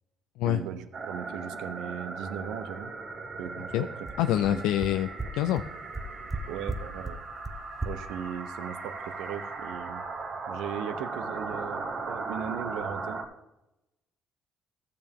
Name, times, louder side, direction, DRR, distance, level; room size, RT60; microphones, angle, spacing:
voice 1, 0.4-2.9 3.4-4.6 6.5-7.2 7.8-10.0 10.5-13.2, right 8 dB, 85° right, 10 dB, 0.8 m, -38 dB
sound 1, 0.9-13.2, right 4 dB, 65° right, 2.1 m, -38 dB
sound 2, 3.7-3.8 4.1-4.2 4.4-4.5 4.8-4.9 5.2-5.3 5.6-5.7 5.9-6.4 6.7-6.8 7.0-7.1 7.4-7.5 7.8-7.9, right 3 dB, 15° right, 1.0 m, -33 dB
voice 2, 4.2-5.6, left 12 dB, 85° left, 9 dB, 0.3 m, -26 dB
15.0 x 6.8 x 3.6 m, 0.92 s
supercardioid pair, 80°, 0 cm